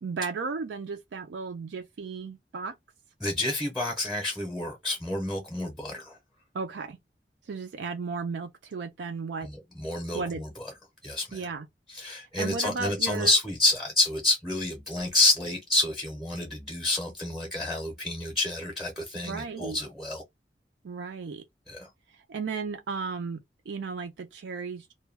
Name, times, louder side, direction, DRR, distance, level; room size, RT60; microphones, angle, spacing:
voice 1, 0.0-2.7 6.5-7.0 7.5-9.5 10.1-10.4 11.3-11.7 12.4-13.3 19.2-19.8 20.8-21.4 22.3-23.4 23.7-24.9, right 4 dB, 85° right, 0.4 m, -34 dB
voice 2, 3.2-6.2 9.4-10.7 11.0-11.5 11.9-20.2 21.7-21.9, left 2 dB, ahead, 0.6 m, -28 dB
2.2 x 2.2 x 3.3 m
head